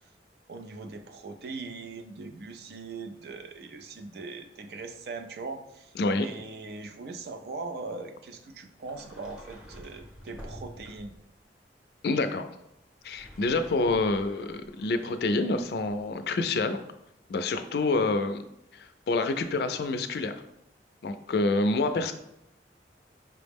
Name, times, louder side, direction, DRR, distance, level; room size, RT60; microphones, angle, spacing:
voice 1, 0.5-11.1, right 3 dB, 65° right, 7 dB, 0.4 m, -40 dB
Sliding door, 8.8-11.3 12.9-16.1, equal, 5° right, 0.7 m, -49 dB
voice 2, 12.0-12.5 13.0-16.8 17.3-18.4 18.7-20.3 21.0-22.1, left 3 dB, 65° left, 9 dB, 0.3 m, -27 dB
5.5 x 2.0 x 3.4 m, 0.82 s
head